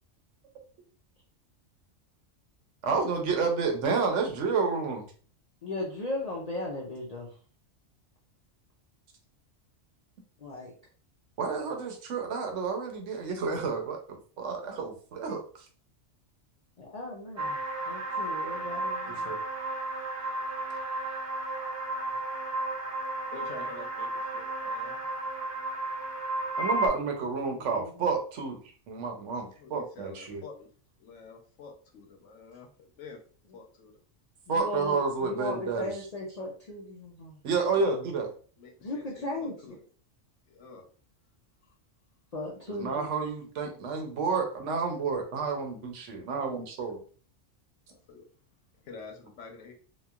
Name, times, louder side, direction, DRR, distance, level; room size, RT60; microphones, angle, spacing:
voice 1, 2.8-5.1 11.4-15.4 19.1-19.4 26.6-28.6 28.9-30.4 34.5-35.9 37.4-38.3 42.7-47.0, right 4 dB, 75° right, 3 dB, 1.0 m, -30 dB
voice 2, 5.6-7.3 10.4-10.7 16.8-17.6 17.9-19.3 27.6-27.9 34.5-37.4 38.8-39.5 42.3-43.1, left 2 dB, 60° left, -2 dB, 0.4 m, -37 dB
sound 1, 17.4-26.9, right 2 dB, 30° right, 0.3 m, -33 dB
voice 3, 23.3-25.0 29.5-30.7 31.0-33.2 33.5-33.9 37.7-37.9 38.6-39.8 40.5-40.8 47.9-48.2 48.8-49.7, left 4 dB, 80° left, 1 dB, 1.0 m, -47 dB
2.9 x 2.3 x 2.3 m, 0.41 s
omnidirectional pair, 1.3 m